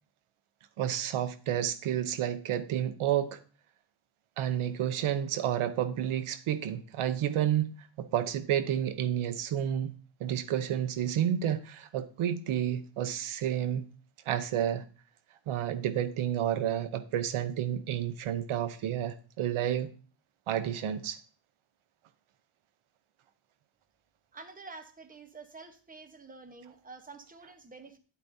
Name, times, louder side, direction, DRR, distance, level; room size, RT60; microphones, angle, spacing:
voice 1, 0.8-3.4 4.4-9.9 10.2-13.9 14.3-14.8 15.5-19.9 20.5-21.2, right 10 dB, 80° right, 0.8 m, -30 dB
voice 2, 24.3-28.0, right 3 dB, 15° right, 1.0 m, -48 dB
10.5 x 8.2 x 2.7 m
cardioid pair, 135°, 49 cm